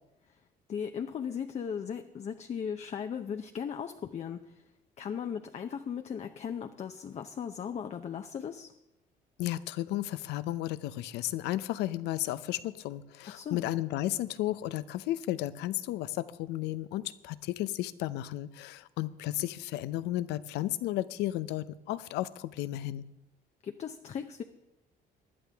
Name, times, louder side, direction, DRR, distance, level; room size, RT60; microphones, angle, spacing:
voice 1, 0.7-4.6 5.0-8.7 13.3-13.6 23.6-24.4, left 7 dB, 40° left, 6 dB, 0.7 m, -37 dB
voice 2, 9.4-23.0, left 15 dB, 90° left, 15 dB, 0.7 m, -33 dB
20.0 x 12.0 x 3.5 m, 0.93 s
cardioid pair, 110°, 17 cm